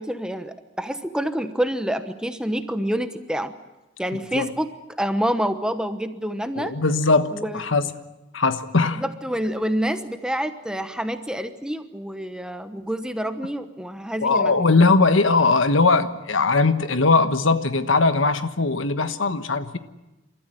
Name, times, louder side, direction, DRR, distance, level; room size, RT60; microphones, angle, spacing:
voice 1, 0.0-3.5 4.0-4.7 5.0-6.7 7.3-7.6 9.0-14.7, equal, 5° right, 9 dB, 1.0 m, -27 dB
voice 2, 4.1-4.5 6.6-7.9 8.3-9.0 14.2-19.8, left 3 dB, 90° left, 10 dB, 1.3 m, -20 dB
28.5 x 13.5 x 10.0 m, 1.0 s
head